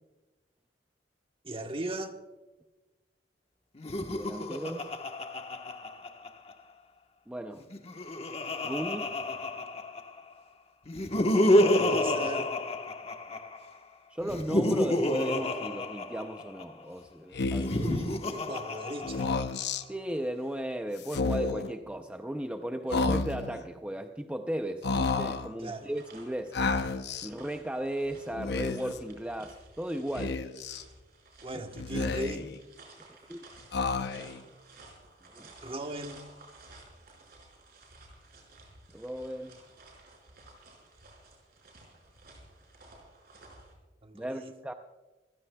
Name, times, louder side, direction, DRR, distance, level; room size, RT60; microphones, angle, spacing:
voice 1, 1.4-2.2 11.5-12.5 17.6-19.3 25.6-25.9 31.4-32.5 35.6-36.2 44.0-44.5, right 1 dB, 30° right, 1.2 m, -38 dB
Laughter, 3.8-6.5 7.6-10.2 10.9-13.6 14.2-16.6 17.5-19.6, left 1 dB, 35° left, 1.2 m, -29 dB
voice 2, 4.1-4.9 7.3-7.7 8.6-9.1 14.1-17.7 19.9-26.6 27.2-30.4 33.3-33.4 34.2-34.5 35.3-35.5 38.9-39.6 44.1-44.7, right 1 dB, 5° right, 0.5 m, -36 dB
Speech, 17.3-17.9 19.0-19.8 21.0-21.7 22.9-23.6 24.8-25.5 26.5-27.3 28.3-29.0 30.2-30.8 31.8-32.6 33.7-34.4, left 3 dB, 65° left, 0.7 m, -31 dB
sound 1, 25.7-43.7, right 2 dB, 55° right, 5.4 m, -55 dB
27.0 x 15.5 x 2.3 m
head